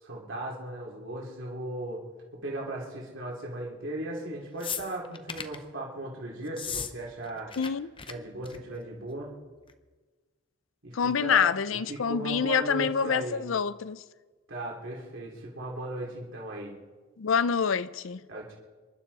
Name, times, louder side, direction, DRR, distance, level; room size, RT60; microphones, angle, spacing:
voice 1, 0.0-2.0 2.4-7.5 8.1-9.3 10.8-13.5 14.5-16.8 18.3-18.5, right 1 dB, 65° right, 3.2 m, -37 dB
sound 1, 4.6-5.6 6.5-6.9 7.2-7.7 8.0-8.1 8.4-8.7 9.7-9.8, left 7 dB, 25° left, 0.7 m, -36 dB
voice 2, 7.6-7.9 10.9-14.0 17.2-18.2, left 6 dB, 70° left, 0.5 m, -26 dB
27.0 x 12.0 x 4.1 m
head